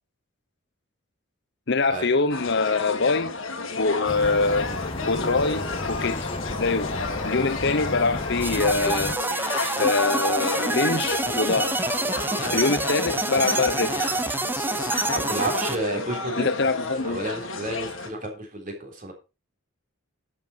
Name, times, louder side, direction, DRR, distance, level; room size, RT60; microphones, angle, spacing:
voice 1, 1.7-3.4 3.8-4.7 5.1-6.3 6.6-7.0 7.2-9.2 9.8-11.9 12.5-14.0 16.4-17.2, left 3 dB, 55° left, 0.8 m, -24 dB
sound 1, 2.3-18.1, left 3 dB, 75° left, 1.9 m, -32 dB
sound 2, 4.1-9.2, left 2 dB, 25° left, 0.9 m, -33 dB
sound 3, 8.4-15.8, right 2 dB, 10° right, 0.6 m, -27 dB
voice 2, 15.1-16.5 17.0-19.1, right 2 dB, 40° right, 3.6 m, -31 dB
10.5 x 7.8 x 4.5 m
head